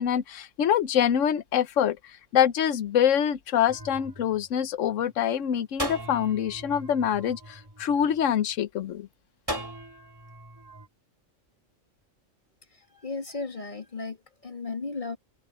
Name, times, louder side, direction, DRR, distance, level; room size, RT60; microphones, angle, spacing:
voice 1, 0.0-2.0 2.3-9.1, left 9 dB, 70° left, 1.2 m, -25 dB
sound 1, 3.7-5.1 5.8-8.3 9.5-10.9, equal, 15° right, 3.4 m, -38 dB
voice 2, 12.6-15.2, left 3 dB, 35° left, 2.4 m, -35 dB
omnidirectional pair, 1.4 m